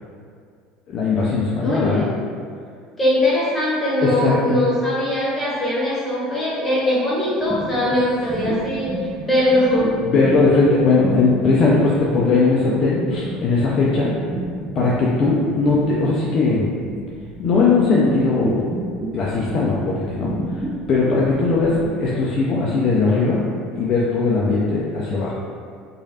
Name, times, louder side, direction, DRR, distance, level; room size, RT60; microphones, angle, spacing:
voice 1, 0.9-2.1 4.0-4.6 10.1-14.2 14.8-16.7 17.4-18.6 19.1-20.3 20.9-23.4 23.7-25.3, left 3 dB, 45° left, -5 dB, 0.4 m, -19 dB
voice 2, 1.6-2.1 3.0-9.0 9.2-9.9, left 1 dB, 15° left, -7 dB, 1.2 m, -21 dB
sound 1, 7.4-22.2, right 1 dB, 20° right, 0.6 m, -30 dB
3.1 x 2.3 x 2.7 m, 2.2 s
figure-of-eight pair, 70°, 0 cm